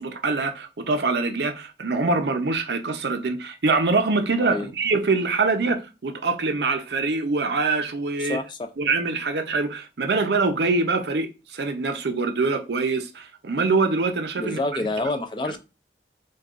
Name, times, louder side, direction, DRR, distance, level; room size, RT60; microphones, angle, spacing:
voice 1, 0.0-8.4 8.8-14.6, right 3 dB, 75° right, 0.6 m, -24 dB
voice 2, 4.4-4.7 8.2-8.7 14.3-15.6, left 2 dB, 25° left, 0.4 m, -28 dB
6.4 x 2.3 x 2.4 m
head